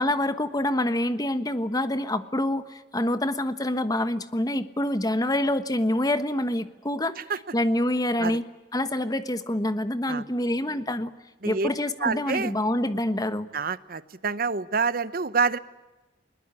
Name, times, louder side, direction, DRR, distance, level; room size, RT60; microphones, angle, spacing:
voice 1, 0.0-7.2 7.5-8.4 8.7-11.1 11.4-13.5, left 1 dB, 20° left, 11 dB, 1.2 m, -26 dB
voice 2, 12.0-12.5 13.5-15.6, right 5 dB, 55° right, 15 dB, 0.9 m, -27 dB
21.5 x 20.5 x 10.0 m, 1.1 s
head